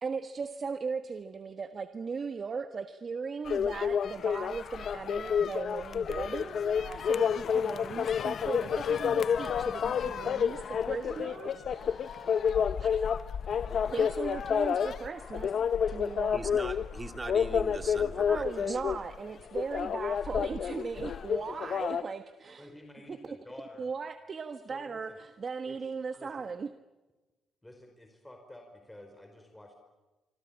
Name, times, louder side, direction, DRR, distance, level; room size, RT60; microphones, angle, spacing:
voice 1, 0.0-12.5 12.8-13.2 13.9-15.6 15.9-16.4 18.3-22.7 23.1-23.4 23.8-26.7, right 5 dB, 40° right, 9 dB, 1.4 m, -38 dB
sound 1, 3.5-22.0, left 7 dB, 60° left, 1.0 m, -30 dB
voice 2, 16.3-18.8, right 3 dB, 25° right, 7 dB, 2.8 m, -40 dB
voice 3, 22.6-23.9 24.7-25.2 25.6-25.8 26.1-26.5 27.6-29.7, left 1 dB, 10° left, 4 dB, 4.9 m, -50 dB
26.5 x 25.5 x 8.8 m, 1.1 s
cardioid pair, 90°, 0 cm